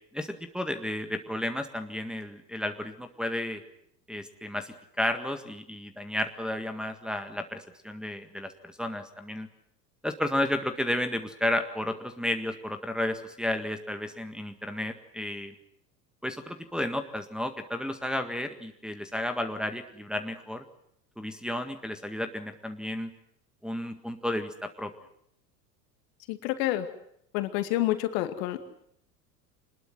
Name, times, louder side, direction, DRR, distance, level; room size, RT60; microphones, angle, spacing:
voice 1, 0.1-3.6 4.1-9.5 10.0-15.5 16.2-20.6 21.2-23.1 23.6-24.9, left 1 dB, ahead, 5 dB, 1.8 m, -32 dB
voice 2, 26.3-26.9 27.3-28.6, left 15 dB, 50° left, 9 dB, 2.3 m, -28 dB
26.0 x 20.5 x 7.8 m, 0.70 s
figure-of-eight pair, 80°, 49 cm